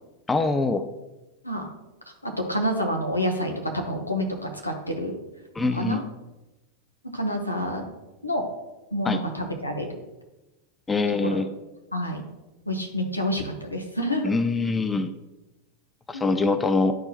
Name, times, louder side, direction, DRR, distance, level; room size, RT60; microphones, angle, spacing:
voice 1, 0.3-0.8 5.5-6.0 9.0-9.2 10.9-11.5 14.2-15.1 16.1-16.9, left 3 dB, 10° left, 9 dB, 0.5 m, -23 dB
voice 2, 2.2-5.2 5.7-6.0 7.1-7.9 8.2-8.4 8.9-9.9 11.2-11.4 11.9-12.2 12.7-14.3 16.1-16.3, equal, 85° left, 2 dB, 1.1 m, -28 dB
11.0 x 4.3 x 2.9 m, 1.0 s
figure-of-eight pair, 90°, 0 cm